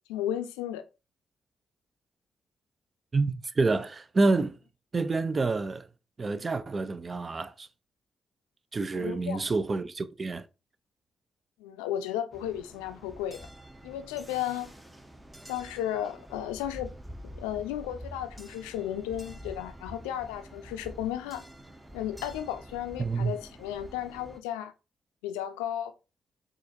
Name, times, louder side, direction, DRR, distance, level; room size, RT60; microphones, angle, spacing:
voice 1, 0.1-0.8 8.9-9.4 11.6-13.5 13.8-14.7 15.5-16.9 17.3-21.4 21.9-24.7 25.2-25.9, left 11 dB, 90° left, 0.3 m, -34 dB
voice 2, 3.1-4.6 4.9-5.9 6.2-7.7 8.7-10.5 23.0-23.3, right 3 dB, 40° right, 0.4 m, -28 dB
sound 1, 12.3-24.4, equal, 15° right, 0.8 m, -47 dB
4.1 x 2.5 x 2.8 m
hypercardioid pair, 45°, 0 cm